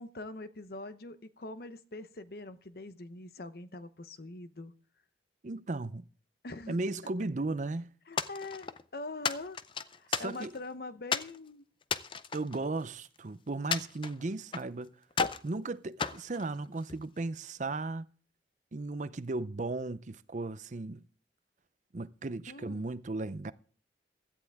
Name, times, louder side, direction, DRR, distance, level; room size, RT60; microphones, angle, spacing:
voice 1, 0.0-4.7 6.4-6.8 8.1-9.6 10.0-11.7 22.5-22.9, left 2 dB, 55° left, 0.8 m, -43 dB
voice 2, 5.4-6.1 6.7-7.9 10.1-10.5 12.3-14.9 15.4-18.1 18.7-21.0 21.9-23.5, right 2 dB, 45° right, 0.5 m, -36 dB
sound 1, 8.2-8.8 9.2-10.7 11.1-11.4 11.8-13.2 13.7-14.7 15.1-15.5 16.0-17.0, left 6 dB, 30° left, 0.5 m, -34 dB
16.5 x 12.0 x 3.5 m
head